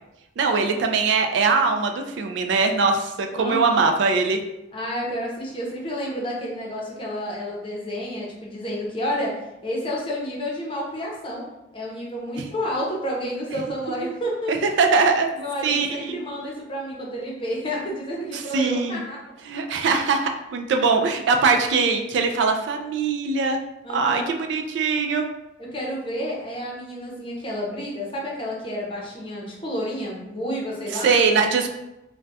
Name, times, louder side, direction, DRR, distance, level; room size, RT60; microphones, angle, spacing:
voice 1, 0.4-4.4 14.5-15.3 15.6-15.9 18.3-19.0 19.5-23.6 23.9-25.3 31.0-31.7, right 4 dB, 70° right, 4 dB, 0.3 m, -21 dB
voice 2, 3.3-3.8 4.7-9.3 9.6-11.4 11.7-14.7 15.3-19.2 23.8-24.3 25.7-31.2, equal, 30° left, -3 dB, 0.7 m, -30 dB
2.3 x 2.2 x 3.9 m, 0.92 s
head